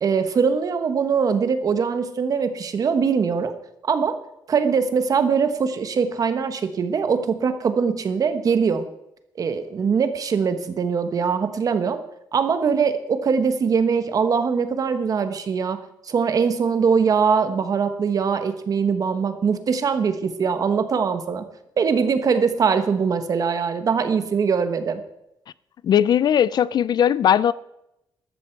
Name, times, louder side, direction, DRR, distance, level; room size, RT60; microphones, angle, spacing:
voice 1, 0.0-3.5 3.8-4.2 4.5-8.8 9.4-12.0 12.3-15.8 16.0-21.4 21.8-25.0, right 6 dB, 45° right, 1.2 m, -22 dB
voice 2, 25.8-27.5, left 9 dB, 60° left, 0.4 m, -18 dB
14.0 x 12.5 x 4.6 m
wide cardioid pair, 170°, 8 cm